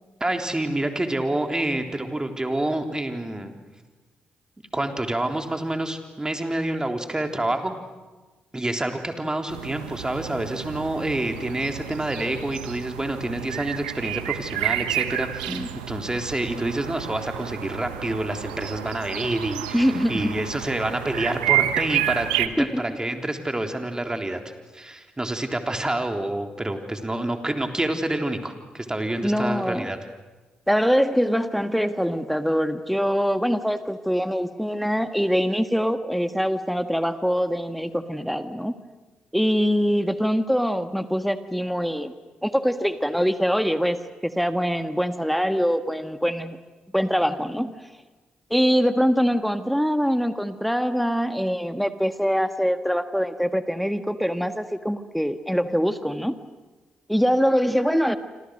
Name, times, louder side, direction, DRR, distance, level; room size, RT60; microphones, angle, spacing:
voice 1, 0.2-3.5 4.7-7.7 8.5-24.4 24.7-30.0, right 1 dB, 15° right, 5 dB, 3.7 m, -28 dB
sound 1, 9.5-22.5, right 14 dB, 85° right, 0.9 m, -30 dB
voice 2, 19.7-20.4 22.6-22.8 29.2-29.9 30.7-38.7 39.3-42.1 42.4-46.6 46.9-47.7 48.5-56.4 57.1-58.2, equal, ahead, 9 dB, 1.6 m, -23 dB
28.5 x 26.0 x 6.5 m, 1.2 s
hypercardioid pair, 40°, 4 cm